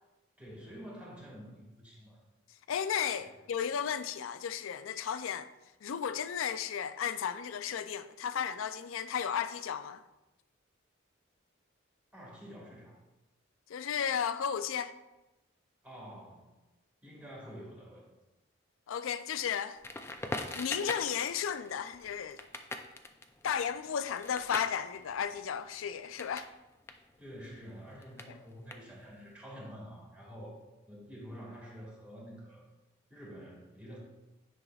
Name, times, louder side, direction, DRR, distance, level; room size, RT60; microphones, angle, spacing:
voice 1, 0.4-2.2 3.2-3.4 12.1-13.0 15.8-16.5 17.0-18.1 27.2-30.6 30.9-32.7 33.1-34.0, equal, 5° right, 1.8 m, -48 dB
voice 2, 2.7-5.5 5.8-10.0 13.7-14.9 18.9-19.8 20.6-22.4 23.4-26.5, left 8 dB, 85° left, 0.4 m, -34 dB
Crackle, 19.8-26.5 26.8-29.3, left 2 dB, 10° left, 0.3 m, -42 dB
9.8 x 5.4 x 2.4 m
head